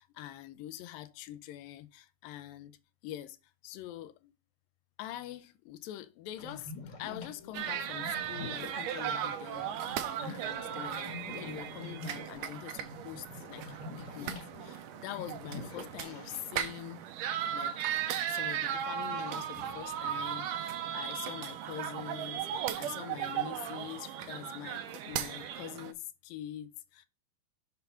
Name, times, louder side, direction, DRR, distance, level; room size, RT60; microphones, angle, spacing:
voice 1, 0.0-2.8 3.0-3.4 3.6-4.3 5.0-17.1 17.5-17.9 18.3-27.1, left 13 dB, 80° left, 2.2 m, -44 dB
sound 1, 6.4-16.8 17.1-17.2 17.8-18.2 18.7-20.5, left 3 dB, 55° left, 2.9 m, -47 dB
sound 2, 7.5-25.9, right 9 dB, 80° right, 1.9 m, -37 dB
6.7 x 4.2 x 5.6 m
omnidirectional pair, 4.3 m